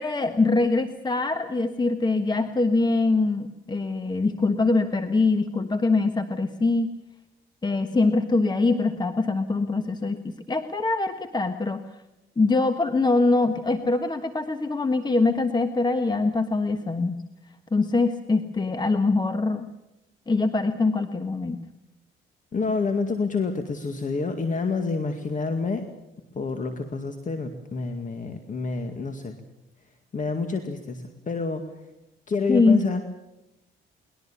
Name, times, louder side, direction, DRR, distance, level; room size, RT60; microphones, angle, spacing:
voice 1, 0.0-6.9 7.6-11.8 12.4-17.2 17.7-19.7 20.3-21.6 32.5-32.8, left 3 dB, 20° left, 8 dB, 1.4 m, -23 dB
voice 2, 22.5-25.9 26.3-29.4 30.1-31.6 32.3-33.0, left 4 dB, 40° left, 6 dB, 2.2 m, -28 dB
22.5 x 20.5 x 7.3 m, 0.92 s
cardioid pair, 90°, 20 cm